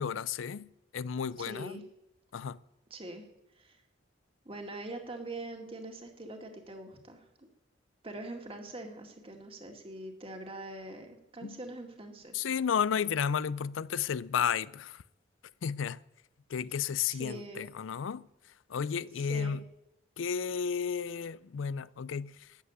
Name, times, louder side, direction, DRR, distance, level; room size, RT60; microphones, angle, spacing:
voice 1, 0.0-1.8 2.3-2.6 11.4-11.6 12.3-15.0 15.6-16.0 16.5-18.3 18.7-19.6 20.2-22.6, left 7 dB, 85° left, 0.4 m, -33 dB
voice 2, 1.4-1.8 2.9-3.3 3.6-3.8 4.5-7.5 8.0-12.5 17.1-17.6 19.2-19.6, right 2 dB, 30° right, 2.1 m, -43 dB
13.0 x 8.3 x 9.6 m
head